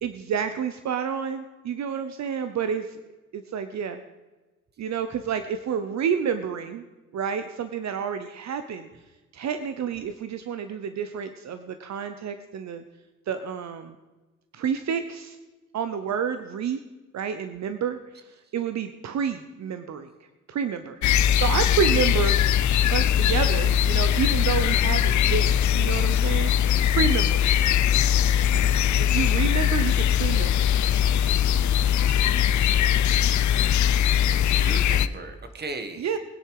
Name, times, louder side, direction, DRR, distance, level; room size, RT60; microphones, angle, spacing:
voice 1, 0.0-3.0 3.3-4.0 4.8-6.8 7.1-8.9 9.3-12.8 13.3-13.9 14.5-15.4 15.7-16.8 17.1-18.2 18.5-20.1 20.5-21.0 21.3-22.4 22.9-26.5 26.9-27.4 29.1-30.7 36.0-36.2, right 7 dB, 60° right, 9 dB, 0.8 m, -29 dB
sound 1, 21.0-35.1, left 10 dB, 65° left, 0.6 m, -21 dB
voice 2, 28.2-28.6 33.7-34.0 34.3-36.1, right 3 dB, 30° right, 7 dB, 1.5 m, -38 dB
20.0 x 10.0 x 4.8 m, 1.2 s
cardioid pair, 145°, 31 cm